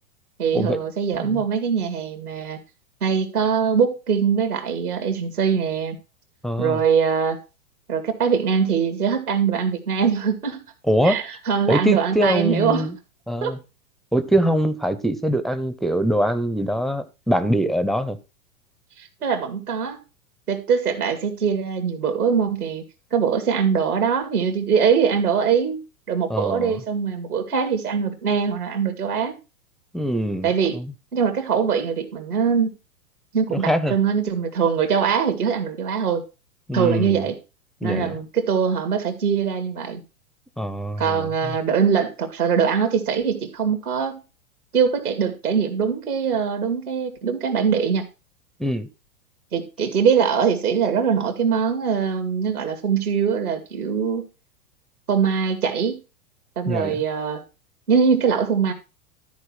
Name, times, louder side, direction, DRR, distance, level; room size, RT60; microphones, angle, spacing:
voice 1, 0.4-2.6 3.0-6.0 6.6-7.4 7.9-10.6 11.0-12.9 13.4-13.5 19.0-20.0 20.5-22.8 23.1-29.3 30.4-30.8 31.1-32.7 33.3-36.2 36.7-37.4 37.8-40.0 41.0-44.2 44.7-48.0 49.5-54.2 55.1-56.0 56.6-57.4 57.9-58.7, right 6 dB, 85° right, 2.6 m, -22 dB
voice 2, 6.4-6.8 10.9-11.2 11.7-12.9 13.3-13.6 14.1-18.2 26.3-26.8 29.9-30.9 33.5-33.9 36.7-37.3 37.8-38.2 40.6-41.5 48.6-48.9 56.7-57.0, equal, ahead, 0.4 m, -23 dB
13.0 x 4.5 x 6.2 m
hypercardioid pair, 110°, 44 cm